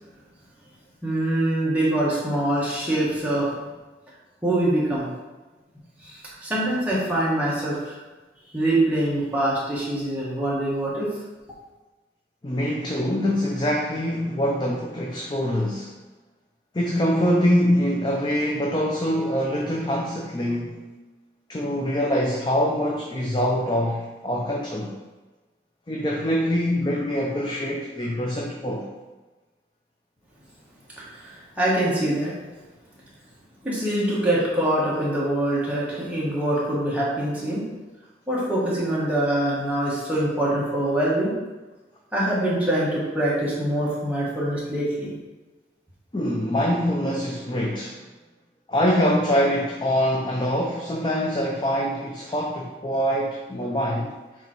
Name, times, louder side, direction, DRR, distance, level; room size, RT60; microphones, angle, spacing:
voice 1, 1.0-3.6 4.4-5.1 6.0-8.0 8.5-11.1 31.0-32.4 33.6-37.6 38.3-41.3 42.1-45.1, right 1 dB, 10° right, -7 dB, 1.5 m, -24 dB
voice 2, 12.4-15.9 16.7-20.8 21.5-24.9 25.9-28.9 46.1-48.0 48.7-54.1, equal, 25° left, -1 dB, 0.5 m, -24 dB
7.2 x 3.1 x 4.4 m, 1.2 s
head